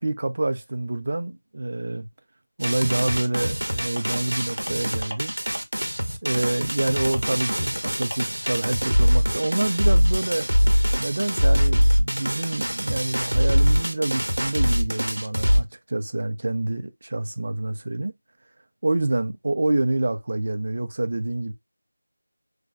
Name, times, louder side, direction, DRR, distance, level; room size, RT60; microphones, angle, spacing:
voice 1, 0.0-2.1 2.6-5.3 6.2-10.5 11.0-18.1 18.8-21.5, right 2 dB, 45° right, 0.4 m, -27 dB
sound 1, 2.6-15.6, equal, 85° right, 0.7 m, -23 dB
3.2 x 2.2 x 2.5 m
figure-of-eight pair, 170°, 0 cm